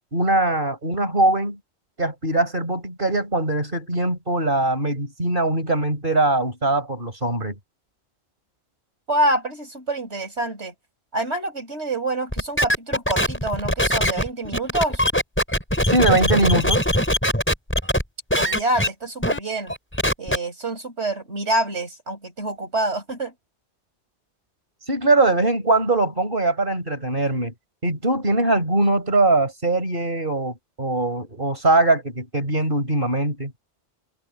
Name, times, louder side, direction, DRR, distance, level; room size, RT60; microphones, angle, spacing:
voice 1, 0.1-1.6 2.0-7.6 15.9-16.9 24.9-27.5 27.8-33.5, right 2 dB, 50° right, 4.8 m, -21 dB
voice 2, 9.1-10.7 11.1-15.0 18.4-19.7 20.2-23.3, right 1 dB, 80° right, 6.1 m, -26 dB
sound 1, 12.3-18.0 18.3-18.9 19.2-19.4 19.7-20.4, equal, 10° left, 5.7 m, -21 dB
omnidirectional pair, 1.1 m